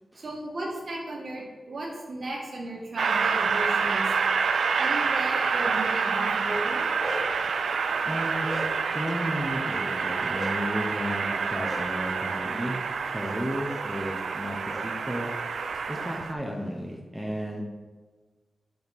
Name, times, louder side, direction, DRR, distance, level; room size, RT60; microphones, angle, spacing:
voice 1, 0.1-4.0 4.8-6.8, right 1 dB, 50° right, -3 dB, 1.4 m, -35 dB
Train, 3.0-16.3, right 5 dB, 90° right, 0.3 m, -28 dB
Bark, 6.8-7.4 8.0-9.0 10.3-10.5 11.6-11.8 13.2-13.4 13.6-13.8 14.6-14.8 15.2-16.0, equal, 20° right, 1.2 m, -38 dB
voice 2, 8.0-8.5 8.9-12.8 13.1-15.3 15.9-17.6, equal, ahead, -2 dB, 0.6 m, -33 dB
5.2 x 4.5 x 4.1 m, 1.4 s
wide cardioid pair, 165°, 0 cm